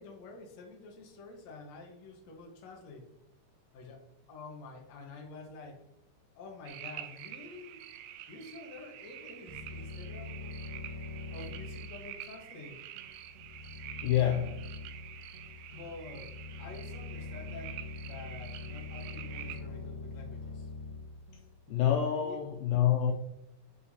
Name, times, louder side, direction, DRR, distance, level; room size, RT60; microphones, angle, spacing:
voice 1, 0.0-3.0 3.7-4.0 4.3-5.8 6.3-7.9 8.3-10.6 11.3-12.8 15.7-16.3 16.6-20.7 22.2-22.4, left 3 dB, 60° left, 0 dB, 2.0 m, -48 dB
sound 1, 6.7-19.6, right 12 dB, 85° right, 2.5 m, -47 dB
sound 2, 9.5-22.0, left 3 dB, 70° right, 2.3 m, -44 dB
voice 2, 14.0-14.7 21.7-23.1, left 10 dB, 80° left, 2 dB, 2.2 m, -27 dB
9.4 x 5.5 x 2.8 m, 0.83 s
omnidirectional pair, 4.4 m